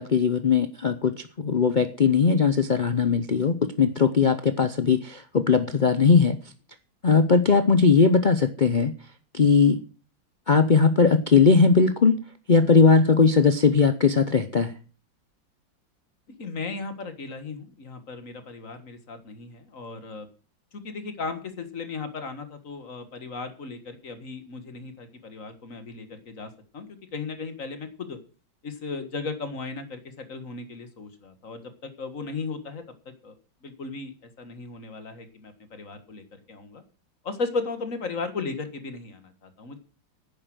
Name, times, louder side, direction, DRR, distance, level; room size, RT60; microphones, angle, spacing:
voice 1, 0.0-6.4 7.0-8.9 9.3-9.8 10.5-12.2 12.5-14.7, left 5 dB, 90° left, 10 dB, 0.4 m, -19 dB
voice 2, 16.4-20.3 20.7-26.9 27.1-28.2 28.6-32.8 33.2-33.4 33.6-36.8 37.2-39.8, left 4 dB, 45° left, 9 dB, 1.9 m, -36 dB
10.0 x 9.7 x 6.2 m, 0.37 s
omnidirectional pair, 2.1 m